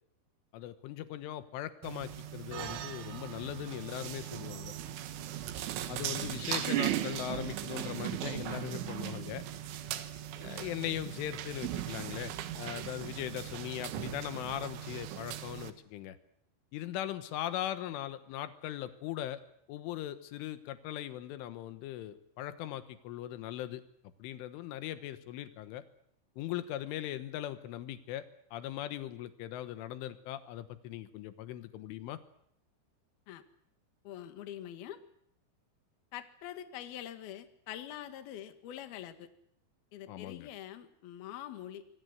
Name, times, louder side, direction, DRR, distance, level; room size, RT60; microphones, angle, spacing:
voice 1, 0.5-4.7 5.9-9.4 10.4-16.2 16.7-19.4 19.7-23.8 24.2-25.8 26.4-28.3 28.5-32.2 40.1-40.5, left 12 dB, 85° left, 11 dB, 3.7 m, -39 dB
sound 1, 1.8-15.7, right 12 dB, 80° right, 3.9 m, -38 dB
sound 2, 2.5-7.2, right 9 dB, 60° right, 2.4 m, -49 dB
voice 2, 34.0-35.0 36.1-39.3 39.9-41.8, left 11 dB, 60° left, 9 dB, 3.2 m, -44 dB
26.5 x 23.0 x 8.1 m, 0.70 s
omnidirectional pair, 5.5 m